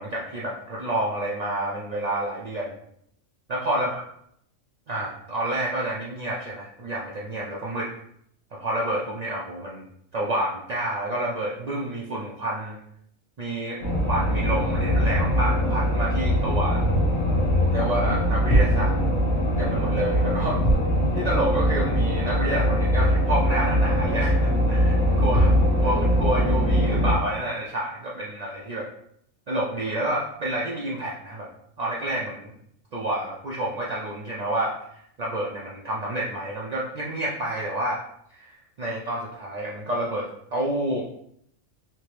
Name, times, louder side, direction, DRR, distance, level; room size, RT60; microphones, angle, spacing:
voice 1, 0.0-2.7 3.5-4.0 4.9-7.9 8.5-9.8 10.1-12.8 13.4-13.8 14.1-16.8 17.7-19.0 19.6-20.6 21.1-25.5 25.8-28.9 29.5-31.5 31.8-32.5 32.9-38.0 38.3-41.0, right 1 dB, 70° right, -4 dB, 0.4 m, -29 dB
sound 1, 13.8-27.2, equal, 55° left, 1.1 m, -22 dB
3.4 x 2.8 x 3.1 m, 0.72 s
omnidirectional pair, 1.3 m